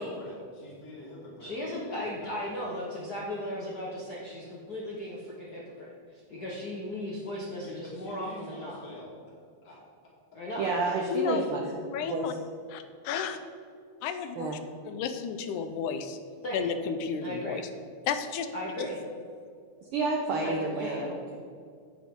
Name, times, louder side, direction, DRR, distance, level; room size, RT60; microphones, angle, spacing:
voice 1, 0.0-1.5 1.9-2.4 7.6-9.1 9.6-9.8, left 1 dB, 35° left, -4 dB, 2.6 m, -46 dB
voice 2, 1.4-8.8 10.3-10.6 16.4-16.7 17.2-17.6 18.5-19.0 20.4-21.0, left 1 dB, 65° left, -4 dB, 0.9 m, -36 dB
voice 3, 10.6-11.6 12.1-12.3 14.4-14.6 19.9-21.4, right 3 dB, 75° right, 0 dB, 1.3 m, -30 dB
voice 4, 11.1-11.4 11.9-12.3 12.7-13.4 14.0-14.5 14.8-16.2 16.5-17.6 18.1-18.5 18.8-18.9, left 7 dB, 90° left, 9 dB, 2.2 m, -32 dB
9.7 x 8.5 x 3.7 m, 2.3 s
omnidirectional pair, 3.4 m